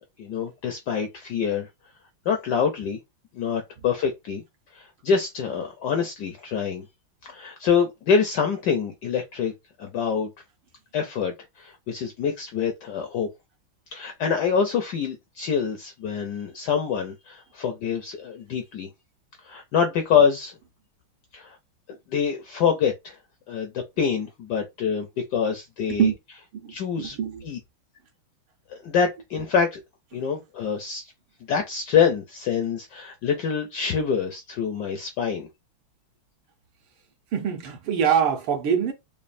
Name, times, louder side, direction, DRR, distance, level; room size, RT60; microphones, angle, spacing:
voice 1, 0.2-1.7 2.3-3.0 3.3-4.4 4.7-6.8 7.3-9.5 9.8-10.3 10.9-13.3 13.9-18.9 19.4-20.5 21.3-21.6 22.1-23.2 23.5-26.1 26.7-27.2 27.4-27.6 28.7-29.8 30.1-31.1 31.5-35.5, left 6 dB, 75° left, 0.9 m, -25 dB
voice 2, 26.5-27.5 30.1-30.2 37.3-38.9, right 8 dB, 75° right, 1.7 m, -24 dB
5.2 x 2.2 x 2.5 m
omnidirectional pair, 2.3 m